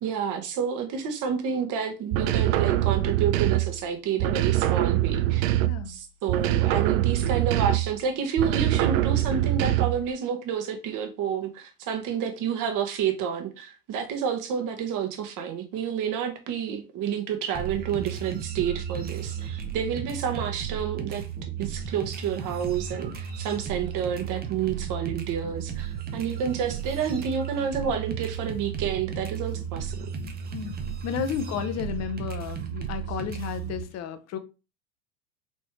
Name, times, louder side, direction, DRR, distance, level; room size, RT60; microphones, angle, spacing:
voice 1, 0.0-5.5 5.9-21.2 21.6-30.1, right 7 dB, 40° right, 1.2 m, -29 dB
sound 1, 2.1-3.8 4.2-5.9 6.3-8.0 8.4-10.1, right 14 dB, 60° right, 0.6 m, -24 dB
voice 2, 5.6-6.0 30.5-34.4, left 8 dB, 35° left, 0.7 m, -33 dB
sound 2, 17.5-33.8, right 8 dB, 20° right, 0.7 m, -34 dB
4.4 x 3.1 x 3.0 m
hypercardioid pair, 100°, 49 cm